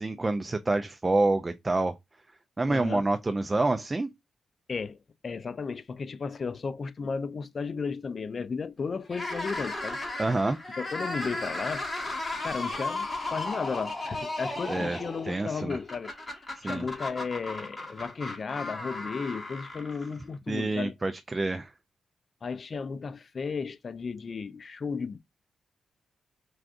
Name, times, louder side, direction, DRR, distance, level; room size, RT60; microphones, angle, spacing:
voice 1, 0.0-1.9 2.6-4.1 10.2-10.6 14.7-15.0 15.3-15.8 16.6-16.9 20.5-21.7, right 2 dB, 25° right, 0.4 m, -27 dB
voice 2, 2.7-3.1 4.7-5.0 5.2-10.0 10.8-11.9 12.4-16.1 16.6-20.9 22.4-25.2, left 5 dB, 45° left, 0.4 m, -34 dB
sound 1, 9.0-20.3, left 2 dB, 30° left, 1.7 m, -35 dB
4.6 x 2.4 x 2.5 m
cardioid pair, 95°, 0 cm